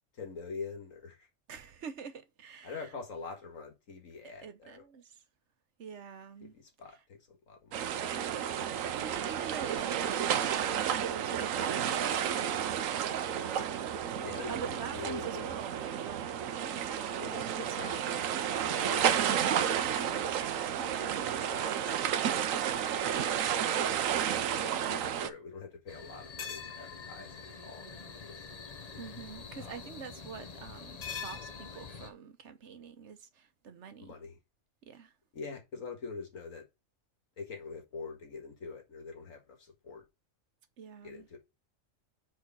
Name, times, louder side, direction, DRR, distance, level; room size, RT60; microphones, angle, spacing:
voice 1, 0.1-1.3 2.6-4.8 6.4-7.8 14.1-15.5 17.2-18.4 18.6-20.2 21.5-23.2 24.5-28.4 29.6-29.8 34.0-34.4 35.3-36.7 37.4-40.0 41.0-41.4, left 4 dB, 75° left, 2.0 m, -45 dB
voice 2, 1.5-2.8 4.4-5.1 5.8-6.5 9.0-12.8 13.3-13.9 14.5-18.0 20.8-21.3 29.0-34.1 34.9-35.1 40.8-41.3, right 7 dB, 60° right, 1.1 m, -45 dB
sound 1, 7.7-25.3, right 9 dB, 80° right, 1.1 m, -31 dB
sound 2, 25.9-32.1, left 5 dB, 35° left, 0.8 m, -44 dB
4.7 x 4.7 x 6.0 m
omnidirectional pair, 1.4 m